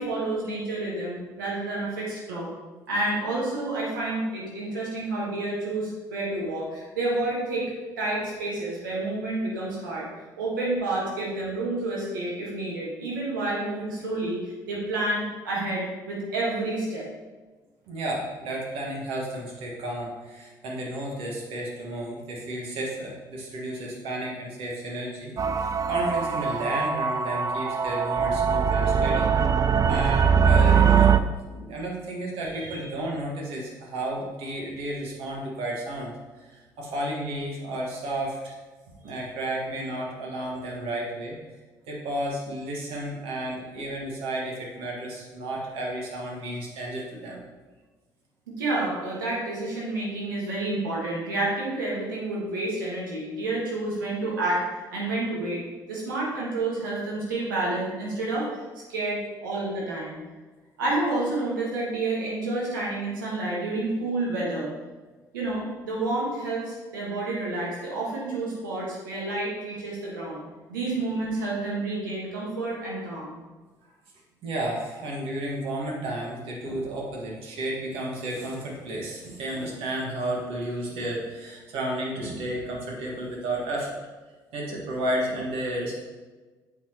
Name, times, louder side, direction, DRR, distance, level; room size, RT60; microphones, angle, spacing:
voice 1, 0.0-2.5 2.9-7.7 8.0-10.1 10.4-17.1 32.5-32.9 39.0-39.1 48.5-54.6 54.9-55.6 55.9-58.6 58.9-60.2 60.8-64.7 65.3-70.4 70.7-73.4, right 2 dB, 85° right, -5 dB, 1.3 m, -29 dB
voice 2, 17.9-29.3 29.9-31.2 31.5-36.1 36.5-38.5 39.0-41.4 41.9-47.4 71.0-71.1 74.4-84.0 84.5-86.0, right 1 dB, 65° right, -2 dB, 1.6 m, -32 dB
sound 1, 25.4-31.2, right 6 dB, 35° right, 0.3 m, -22 dB
8.1 x 4.2 x 2.9 m, 1.3 s
hypercardioid pair, 50°, 10 cm